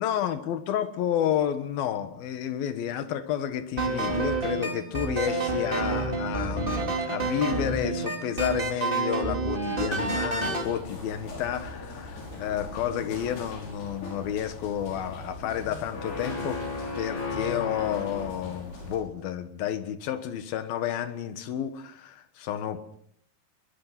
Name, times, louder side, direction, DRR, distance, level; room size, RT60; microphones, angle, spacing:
voice 1, 0.0-16.6 17.0-22.9, left 10 dB, 70° left, 10 dB, 3.2 m, -31 dB
sound 1, 3.8-10.7, right 2 dB, 15° right, 2.7 m, -28 dB
sound 2, 10.4-19.0, left 3 dB, 85° left, 7.9 m, -37 dB
22.5 x 22.0 x 6.0 m, 0.65 s
omnidirectional pair, 4.5 m